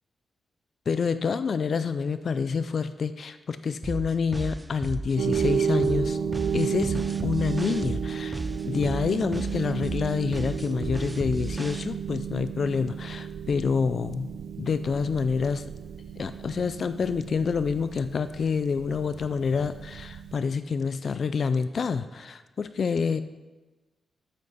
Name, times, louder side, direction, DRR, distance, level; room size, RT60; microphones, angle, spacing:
voice 1, 0.9-6.2 6.5-14.3 14.6-15.7 16.2-23.2, left 5 dB, 45° left, 12 dB, 0.4 m, -27 dB
sound 1, 3.8-11.8, right 2 dB, 15° right, 0.5 m, -34 dB
sound 2, 5.2-20.3, right 7 dB, 90° right, 0.6 m, -32 dB
13.5 x 9.7 x 4.1 m, 1.2 s
wide cardioid pair, 165°, 0 cm